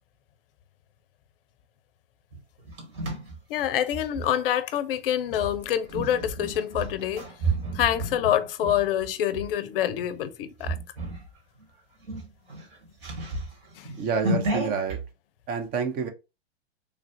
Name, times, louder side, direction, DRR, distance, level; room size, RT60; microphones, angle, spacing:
sound 1, 2.3-4.3 5.3-9.5 10.0-10.2 10.6-11.3 11.6-11.7 12.0-15.0, right 2 dB, 60° right, 1.8 m, -32 dB
voice 1, 3.5-7.3 7.7-10.8 13.8-13.9, left 10 dB, 60° left, 0.5 m, -26 dB
voice 2, 14.0-15.0 15.5-16.1, right 5 dB, 30° right, 0.6 m, -28 dB
3.2 x 2.4 x 2.6 m
hypercardioid pair, 115°, 33 cm